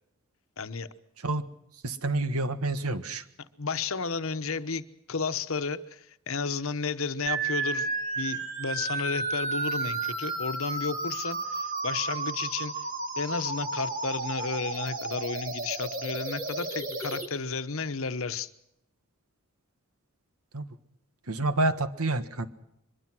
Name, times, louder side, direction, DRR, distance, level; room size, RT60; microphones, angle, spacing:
voice 1, 0.6-0.9 3.6-7.9 8.2-12.7 13.2-18.5, left 4 dB, 65° left, 12 dB, 1.1 m, -32 dB
voice 2, 1.8-3.2 20.5-20.7 21.3-22.5, right 2 dB, 80° right, 11 dB, 1.6 m, -28 dB
sound 1, 7.3-17.3, right 3 dB, 35° right, 3.0 m, -32 dB
23.5 x 22.0 x 6.2 m, 0.81 s
head